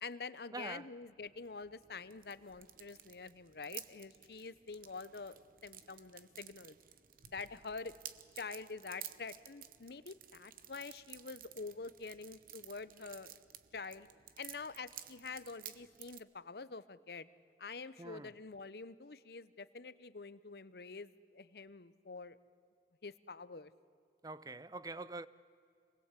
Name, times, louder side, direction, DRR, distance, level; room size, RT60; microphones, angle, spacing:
voice 1, 0.0-6.8 7.3-7.9 8.3-13.3 13.7-14.1 14.4-17.3 17.6-22.4 23.0-23.7, left 4 dB, 60° left, 0.8 m, -47 dB
voice 2, 0.5-0.9 18.0-18.3 24.2-25.3, right 3 dB, 20° right, 0.6 m, -45 dB
sound 1, 1.2-16.2, right 11 dB, 50° right, 0.9 m, -54 dB
27.0 x 20.5 x 8.3 m
head